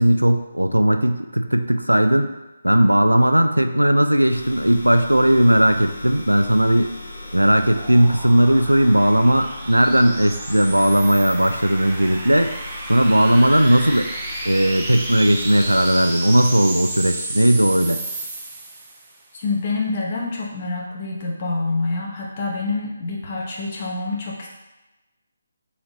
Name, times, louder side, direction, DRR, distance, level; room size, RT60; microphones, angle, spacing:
voice 1, 0.0-2.3 2.6-6.9 7.3-12.5 12.9-14.1 14.4-18.0, right 1 dB, 85° right, 7 dB, 0.3 m, -17 dB
sound 1, 4.3-15.9, left 2 dB, 70° left, 1.4 m, -38 dB
sound 2, 6.9-19.2, right 2 dB, 15° right, 0.5 m, -33 dB
voice 2, 19.3-24.5, left 3 dB, 35° left, -3 dB, 0.9 m, -26 dB
4.1 x 2.9 x 3.7 m, 1.1 s
figure-of-eight pair, 145°, 0 cm